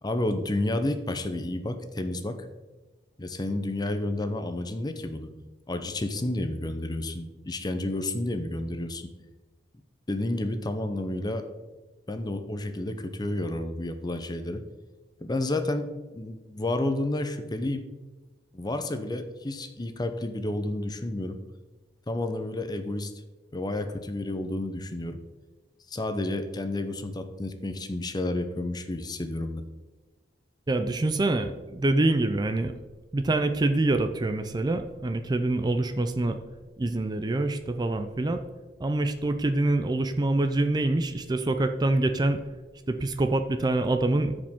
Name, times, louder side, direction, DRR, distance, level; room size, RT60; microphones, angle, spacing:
voice 1, 0.0-2.4 3.2-5.3 5.7-9.1 10.1-11.5 12.1-14.6 15.2-17.8 18.5-21.4 22.1-23.1 23.5-25.2 25.9-29.6, left 1 dB, 25° left, 8 dB, 0.7 m, -30 dB
voice 2, 30.7-32.7 33.1-36.4 36.8-38.4 38.8-42.4 42.9-44.4, right 2 dB, 25° right, 7 dB, 0.4 m, -25 dB
13.0 x 5.0 x 3.6 m, 1.2 s
head